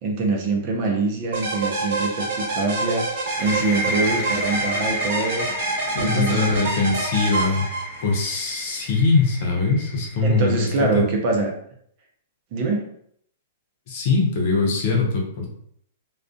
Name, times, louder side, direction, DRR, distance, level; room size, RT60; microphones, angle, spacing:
voice 1, 0.0-3.1 3.4-5.5 6.0-6.6 10.2-11.5 12.5-12.9, right 3 dB, 45° right, 1 dB, 0.6 m, -24 dB
sound 1, 1.3-8.2, right 2 dB, 65° right, 0.9 m, -27 dB
sound 2, 3.3-10.8, equal, 15° left, 0.4 m, -32 dB
voice 2, 5.9-7.7 8.0-11.1 13.9-15.5, left 3 dB, 55° left, 0 dB, 0.8 m, -22 dB
2.4 x 2.3 x 2.4 m, 0.66 s
hypercardioid pair, 120°, 0 cm